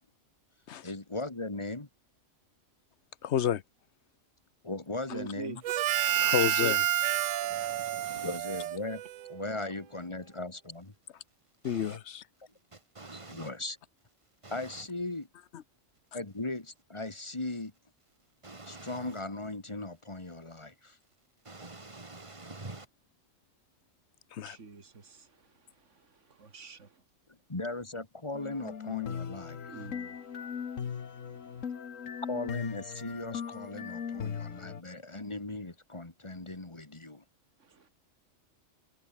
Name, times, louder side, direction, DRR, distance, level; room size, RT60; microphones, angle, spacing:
voice 1, 0.8-1.9 4.6-5.6 8.2-9.0 9.3-10.9 13.3-13.8 14.5-15.2 16.1-17.7 18.7-21.0 27.5-29.8 32.3-37.2, left 2 dB, 25° left, 2.0 m, -38 dB
voice 2, 3.2-3.6 6.1-6.9 7.5-7.7 11.6-12.2 24.3-24.6, left 9 dB, 65° left, 1.1 m, -30 dB
voice 3, 5.1-5.6 7.4-7.5 24.4-27.0 29.7-31.7 37.6-37.9, right 4 dB, 70° right, 2.7 m, -48 dB
Harmonica, 5.6-9.4, right 13 dB, 85° right, 1.0 m, -29 dB
voice 4, 7.5-8.4 11.6-12.0 12.7-13.5 14.4-14.8 18.4-19.1 21.5-22.9, right 2 dB, 25° right, 2.3 m, -46 dB
sound 1, 28.3-34.8, left 7 dB, 80° left, 1.7 m, -39 dB
omnidirectional pair, 1.3 m